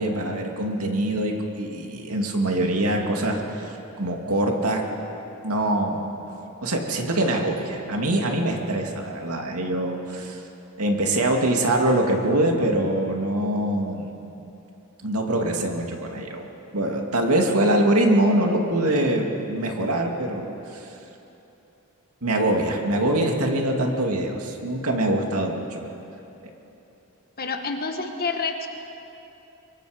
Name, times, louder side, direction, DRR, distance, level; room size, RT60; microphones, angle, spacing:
voice 1, 0.0-4.8 5.4-6.1 6.6-10.4 10.8-14.1 15.0-16.5 16.7-20.9 22.2-25.9, right 1 dB, 80° right, 1 dB, 2.4 m, -24 dB
voice 2, 27.4-28.7, left 4 dB, 45° left, 4 dB, 1.4 m, -28 dB
24.5 x 23.0 x 5.2 m, 3.0 s
head